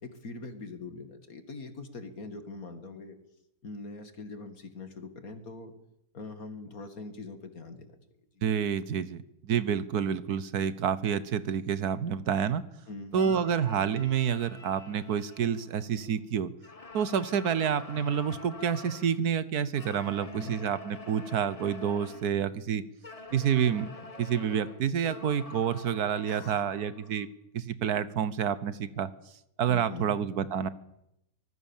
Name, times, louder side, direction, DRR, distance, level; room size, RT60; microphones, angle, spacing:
voice 1, 0.0-3.2 3.6-5.7 6.1-7.9 8.3-8.4 12.9-13.4 20.0-20.6 26.3-26.6 29.7-30.2, left 3 dB, 65° left, 8 dB, 2.7 m, -42 dB
voice 2, 8.4-12.6 13.1-16.5 16.9-22.8 23.3-23.9 24.2-27.3 27.5-29.1 29.6-30.7, right 8 dB, 75° right, 16 dB, 1.5 m, -28 dB
sound 1, 13.1-16.2 16.6-19.2 19.7-22.4 23.0-27.2, left 2 dB, 25° left, 1.3 m, -47 dB
25.0 x 19.5 x 7.3 m, 0.82 s
omnidirectional pair, 1.7 m